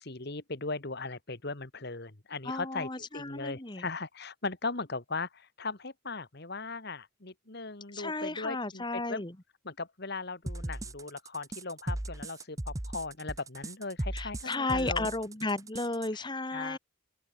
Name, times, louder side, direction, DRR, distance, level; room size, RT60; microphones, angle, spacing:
voice 1, 0.0-9.2 9.6-15.1 16.1-16.3 16.5-16.8, left 3 dB, 50° left, 1.9 m, -38 dB
voice 2, 2.5-3.8 7.9-9.3 14.1-16.8, left 2 dB, 20° left, 1.5 m, -34 dB
sound 1, 10.5-16.1, right 1 dB, 15° right, 0.7 m, -37 dB
open air
head